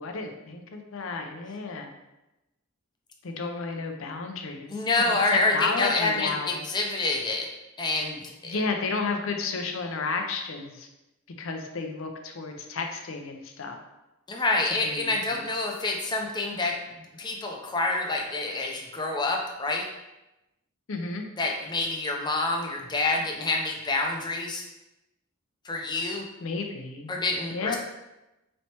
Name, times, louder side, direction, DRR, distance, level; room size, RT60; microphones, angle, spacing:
voice 1, 0.0-1.9 3.2-6.6 8.4-10.9 11.4-13.8 14.8-15.4 20.9-21.3 26.4-27.1 27.5-27.8, left 4 dB, 65° left, 4 dB, 0.5 m, -32 dB
voice 2, 4.7-7.5 7.8-8.6 14.3-16.8 17.2-19.9 21.4-24.6 25.6-26.2 27.1-27.8, left 2 dB, 20° left, 0 dB, 0.5 m, -27 dB
4.2 x 3.2 x 2.9 m, 0.97 s
head